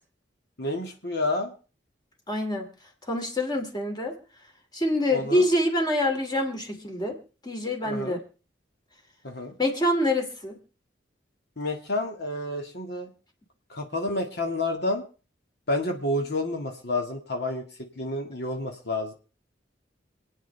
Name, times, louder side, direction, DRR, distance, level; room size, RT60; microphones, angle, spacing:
voice 1, 0.6-1.5 5.1-5.4 7.8-8.2 9.2-9.5 11.6-13.1 13.7-15.0 15.7-17.6 18.0-19.1, left 2 dB, 60° left, 3 dB, 2.0 m, -29 dB
voice 2, 2.3-2.7 3.1-4.2 4.7-7.2 7.4-8.2 9.6-10.6, left 1 dB, 25° left, 3 dB, 2.6 m, -26 dB
27.5 x 9.2 x 3.4 m, 0.37 s
head